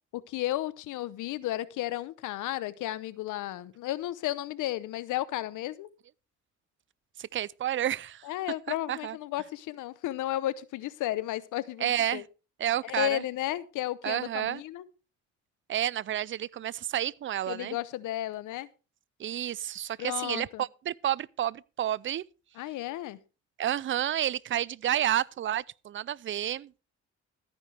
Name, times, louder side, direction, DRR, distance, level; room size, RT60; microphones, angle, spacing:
voice 1, 0.1-5.9 8.2-12.2 12.8-14.9 17.5-18.7 20.0-20.6 22.6-23.2, left 14 dB, 85° left, 0.8 m, -33 dB
voice 2, 7.2-8.3 8.9-9.2 11.8-12.2 12.6-13.2 14.0-14.6 15.7-17.8 19.2-22.2 23.6-26.7, right 11 dB, 40° right, 0.4 m, -30 dB
13.5 x 9.8 x 3.4 m
cardioid pair, 90°, 30 cm